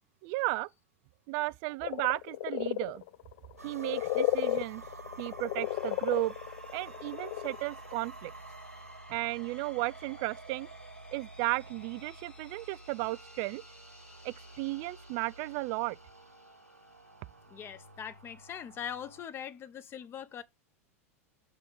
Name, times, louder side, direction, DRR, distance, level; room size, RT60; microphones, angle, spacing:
voice 1, 0.2-0.7 1.3-3.0 3.6-4.8 5.2-6.3 6.7-8.3 9.1-10.7 11.1-13.6 14.2-16.0, right 20 dB, 45° right, 0.3 m, -34 dB
sound 1, 1.8-7.6 7.9-8.0, left 16 dB, 55° left, 0.4 m, -33 dB
sound 2, 3.6-19.2, right 2 dB, 85° right, 1.1 m, -50 dB
sound 3, 5.6-19.7, left 3 dB, 15° left, 1.2 m, -59 dB
voice 2, 17.5-20.4, left 8 dB, 30° left, 0.9 m, -41 dB
6.8 x 3.6 x 5.8 m
figure-of-eight pair, 90°, 8 cm